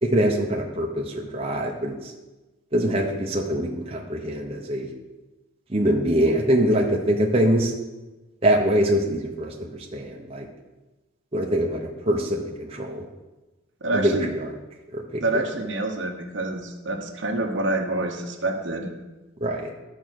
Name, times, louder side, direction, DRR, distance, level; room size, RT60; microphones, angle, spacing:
voice 1, 0.0-2.1 2.7-4.9 5.7-7.7 8.4-10.5 11.3-13.1 13.9-14.5 14.9-15.4 19.4-19.7, equal, 30° right, 0 dB, 0.9 m, -24 dB
voice 2, 13.8-14.3 15.2-18.9, right 2 dB, 60° right, 4 dB, 1.1 m, -27 dB
11.0 x 5.0 x 6.5 m, 1.1 s
head